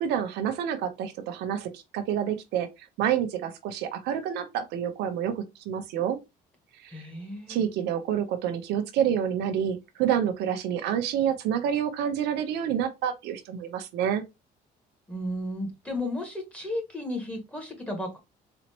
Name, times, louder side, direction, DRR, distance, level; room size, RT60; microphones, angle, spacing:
voice 1, 0.0-2.7 3.0-6.2 6.8-7.0 7.5-14.2, right 9 dB, 85° right, 0.8 m, -28 dB
voice 2, 6.9-7.6 15.1-18.2, left 1 dB, 5° left, 1.8 m, -34 dB
4.2 x 2.9 x 2.9 m
cardioid pair, 110°, 17 cm